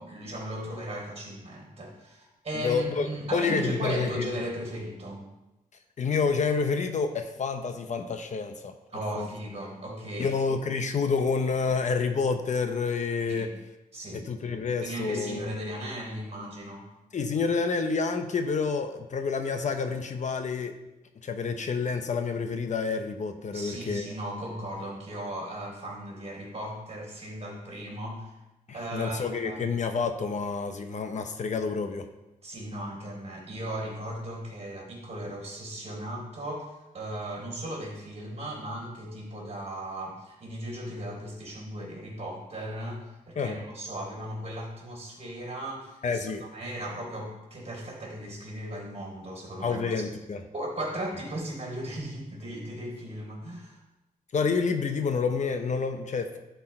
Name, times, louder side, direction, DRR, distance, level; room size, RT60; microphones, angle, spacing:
voice 1, 0.0-5.3 8.9-10.3 13.3-13.5 13.9-14.3 14.8-16.9 23.5-28.4 28.7-29.7 32.4-46.2 46.5-50.0 50.5-53.8, right 1 dB, 45° right, -3 dB, 3.5 m, -37 dB
voice 2, 2.5-3.1 3.3-4.3 6.0-8.8 9.1-9.3 10.2-13.5 14.3-15.5 17.1-20.7 21.2-24.1 28.7-32.1 43.4-43.6 46.0-46.5 49.6-50.4 54.3-56.4, left 5 dB, 55° left, 7 dB, 0.8 m, -28 dB
12.0 x 4.6 x 4.4 m, 0.99 s
wide cardioid pair, 105°, 15 cm